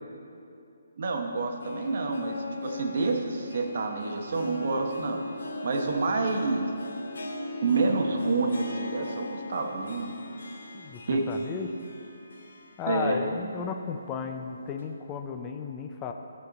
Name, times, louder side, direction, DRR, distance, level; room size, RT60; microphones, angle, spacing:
voice 1, 1.0-5.2 5.6-6.6 7.6-10.1 11.1-11.2 12.9-13.2, right 3 dB, 45° right, 3 dB, 1.0 m, -28 dB
Harp, 1.3-13.5 13.8-13.9 14.8-14.9, left 2 dB, 75° left, 1.2 m, -40 dB
voice 2, 11.3-11.7 12.8-16.1, left 6 dB, 15° left, 5 dB, 0.3 m, -34 dB
14.0 x 5.2 x 4.0 m, 2.7 s
hypercardioid pair, 170°, 0 cm